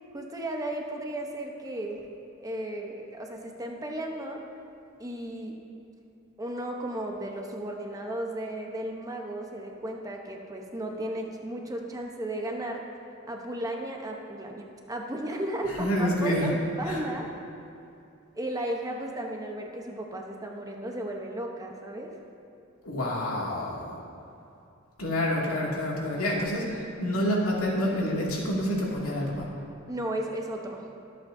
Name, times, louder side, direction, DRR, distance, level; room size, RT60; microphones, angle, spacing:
voice 1, 0.1-2.0 2.4-4.4 5.0-5.5 6.4-12.8 13.3-17.3 18.3-22.2 29.9-30.9, right 1 dB, 15° right, 1 dB, 0.9 m, -34 dB
voice 2, 15.6-16.5 16.8-17.0 22.8-24.0 25.0-29.5, equal, 85° left, -4 dB, 2.5 m, -28 dB
22.5 x 8.3 x 2.7 m, 2.6 s
head